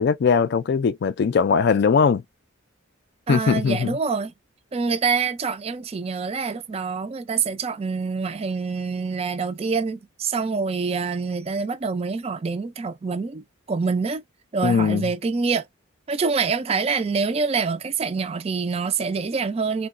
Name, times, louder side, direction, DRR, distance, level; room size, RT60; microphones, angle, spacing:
voice 1, 0.0-2.2 3.3-4.0 14.6-15.0, left 5 dB, 50° left, 0.3 m, -20 dB
voice 2, 3.3-4.3 4.7-14.2 14.5-15.7 16.1-19.9, right 5 dB, 30° right, 0.3 m, -26 dB
3.8 x 2.1 x 2.4 m
head